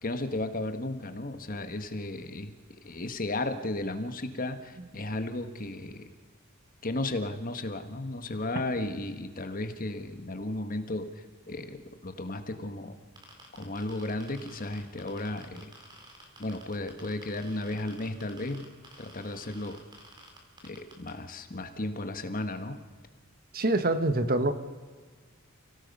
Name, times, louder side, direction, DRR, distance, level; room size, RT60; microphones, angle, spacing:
voice 1, 0.0-2.5 2.8-6.0 6.8-13.0 13.5-15.7 16.4-18.7 19.0-19.8 20.6-22.8, left 2 dB, 40° left, 8 dB, 1.5 m, -34 dB
sound 1, 13.2-21.1, right 2 dB, 20° right, 3.7 m, -51 dB
voice 2, 23.5-24.5, right 2 dB, 45° right, 10 dB, 1.2 m, -25 dB
30.0 x 17.5 x 5.4 m, 1.5 s
head